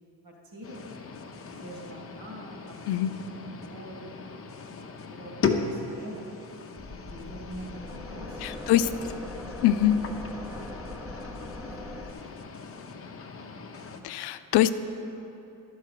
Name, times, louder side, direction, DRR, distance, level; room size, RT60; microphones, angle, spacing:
voice 1, 0.2-0.9 1.4-4.8 5.1-6.3 7.1-9.2 9.7-10.1 10.5-12.0, right 1 dB, 60° right, -1 dB, 2.2 m, -46 dB
sound 1, 0.6-14.0, left 5 dB, 35° left, 0.7 m, -37 dB
sound 2, 6.8-12.1, left 1 dB, 5° right, 0.7 m, -41 dB
voice 2, 8.4-8.9 9.6-10.0 14.0-14.7, left 12 dB, 85° left, 11 dB, 0.5 m, -23 dB
11.5 x 4.7 x 6.5 m, 2.9 s
cardioid pair, 115°, 39 cm